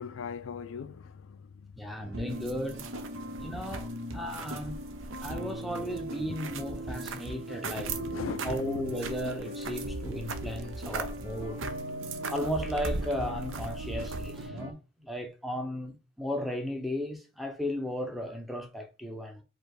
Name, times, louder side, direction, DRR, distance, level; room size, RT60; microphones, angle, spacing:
voice 1, 0.0-1.4 7.7-8.6, left 6 dB, 70° left, 0.4 m, -39 dB
voice 2, 1.8-2.8 3.4-3.9 4.1-4.8 5.2-8.0 8.4-12.0 12.3-19.4, equal, ahead, 0.7 m, -35 dB
sound 1, 2.0-14.7, right 1 dB, 85° right, 1.0 m, -39 dB
sound 2, 2.3-14.5, right 3 dB, 70° right, 0.6 m, -40 dB
4.8 x 2.3 x 4.6 m
head